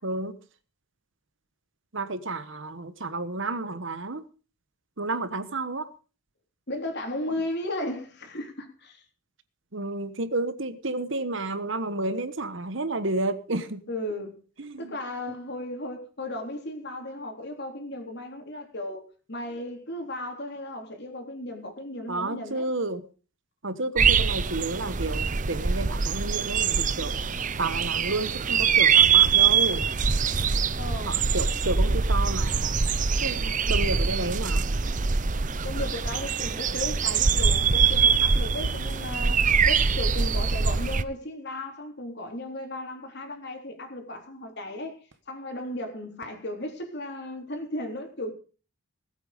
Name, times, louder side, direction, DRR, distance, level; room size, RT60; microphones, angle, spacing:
voice 1, 0.0-0.3 1.9-4.2 5.0-5.9 9.7-13.8 14.6-14.9 22.1-23.0 23.6-27.3 27.6-29.9 31.0-32.8 33.2-34.6, right 2 dB, 55° right, 1.2 m, -31 dB
voice 2, 6.7-9.0 13.9-14.4 14.8-19.0 19.3-22.7 30.8-31.2 35.6-45.0 45.3-48.3, left 1 dB, 50° left, 3.7 m, -35 dB
sound 1, 24.0-41.0, right 6 dB, 35° right, 0.6 m, -23 dB
19.5 x 8.6 x 5.2 m
head